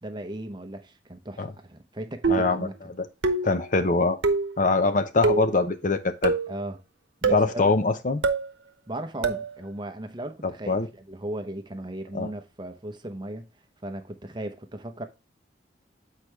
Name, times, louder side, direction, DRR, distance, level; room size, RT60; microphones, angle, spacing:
voice 1, 0.0-2.7 6.5-6.8 7.2-7.7 8.9-13.5 13.8-15.1, right 1 dB, 25° right, 0.7 m, -36 dB
sound 1, 2.2-2.6 3.2-3.6 4.2-4.5 5.2-5.5 6.2-6.6 7.2-7.5 8.2-8.5 9.2-9.5, right 3 dB, 80° right, 0.9 m, -24 dB
voice 2, 2.3-2.7 3.0-3.1 3.4-4.2 4.6-6.3 7.3-8.2 10.7-10.9 12.1-12.3, left 3 dB, 45° left, 0.7 m, -23 dB
8.2 x 4.7 x 3.2 m
head